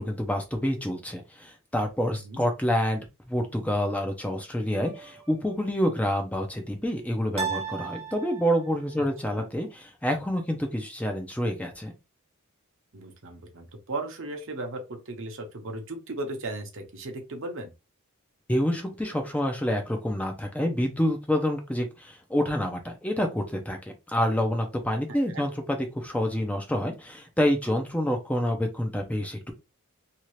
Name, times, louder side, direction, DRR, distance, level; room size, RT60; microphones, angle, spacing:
voice 1, 0.0-3.0 3.3-11.9 18.5-29.5, equal, 5° left, 4 dB, 0.5 m, -28 dB
sound 1, 4.8-5.5 7.4-8.8, right 6 dB, 30° right, 0.7 m, -35 dB
voice 2, 12.9-17.7 25.1-25.4, right 2 dB, 65° right, 4 dB, 0.8 m, -36 dB
2.8 x 2.4 x 3.1 m, 0.26 s
head